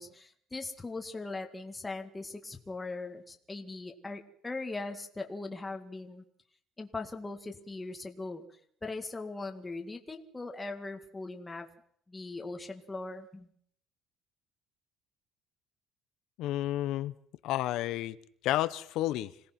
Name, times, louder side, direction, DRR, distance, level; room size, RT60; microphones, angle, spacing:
voice 1, 0.0-6.2 6.8-8.4 8.8-11.7 12.1-13.5, left 3 dB, 15° left, 4 dB, 1.9 m, -40 dB
voice 2, 16.4-17.1 17.4-18.2 18.4-19.3, left 15 dB, 75° left, 15 dB, 1.0 m, -31 dB
26.0 x 18.0 x 6.0 m, 0.66 s
cardioid pair, 145°, 0 cm